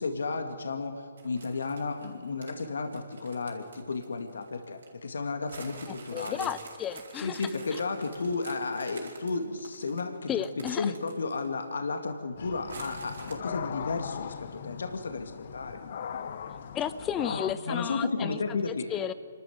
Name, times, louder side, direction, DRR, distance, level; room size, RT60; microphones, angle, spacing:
voice 1, 0.0-6.5 7.1-15.8 17.3-17.4 17.7-18.9, left 4 dB, 75° left, 5 dB, 2.0 m, -33 dB
sound 1, 1.2-4.9 5.5-11.6 11.9-12.0 12.7-13.3, right 4 dB, 65° right, 4.4 m, -48 dB
voice 2, 6.1-7.4 7.7-7.8 10.3-10.9 16.7-19.1, left 9 dB, 15° left, 13 dB, 0.8 m, -33 dB
sound 2, 12.4-17.5, left 7 dB, 50° left, 1.0 m, -39 dB
27.0 x 13.0 x 8.0 m, 2.1 s
hypercardioid pair, 150°, 0 cm